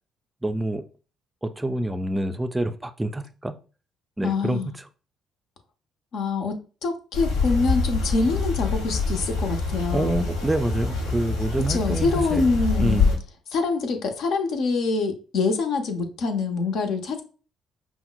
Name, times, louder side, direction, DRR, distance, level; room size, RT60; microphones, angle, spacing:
voice 1, 0.4-0.9 1.4-3.5 4.2-4.9 9.9-12.5 12.8-13.2, right 1 dB, 15° right, 10 dB, 0.4 m, -27 dB
voice 2, 4.2-4.7 6.1-10.3 11.7-13.1 13.5-17.2, left 4 dB, 60° left, 5 dB, 0.7 m, -25 dB
sound 1, 7.1-13.1, left 4 dB, 80° left, 1.3 m, -25 dB
5.3 x 2.1 x 2.2 m, 0.35 s
hypercardioid pair, 50°, 0 cm